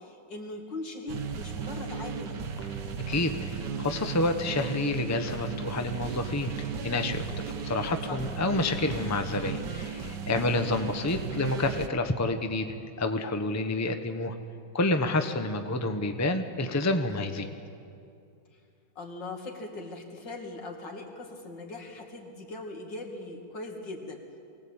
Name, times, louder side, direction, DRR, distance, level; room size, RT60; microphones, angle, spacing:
voice 1, 0.0-2.4 8.1-8.2 10.2-10.5 17.2-17.5 19.0-24.4, left 2 dB, 85° left, 1 dB, 3.2 m, -40 dB
sound 1, 1.1-11.9, right 6 dB, 75° right, 1.6 m, -35 dB
voice 2, 3.1-7.2 7.6-12.7 13.0-14.3 14.7-17.5, left 2 dB, 10° left, 6 dB, 0.8 m, -29 dB
23.5 x 18.0 x 8.8 m, 2.5 s
omnidirectional pair, 1.9 m